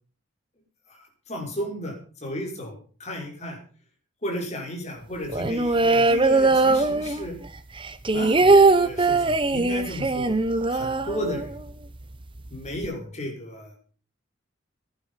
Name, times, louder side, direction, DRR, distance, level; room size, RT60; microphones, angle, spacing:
voice 1, 0.9-3.6 4.2-7.4 8.1-10.4 10.7-11.5 12.5-13.8, equal, 35° left, 0 dB, 5.8 m, -34 dB
sound 1, 5.3-7.5 7.8-11.7 12.0-12.1 12.4-12.9, right 3 dB, 25° right, 0.9 m, -20 dB
16.0 x 11.0 x 5.8 m, 0.41 s
head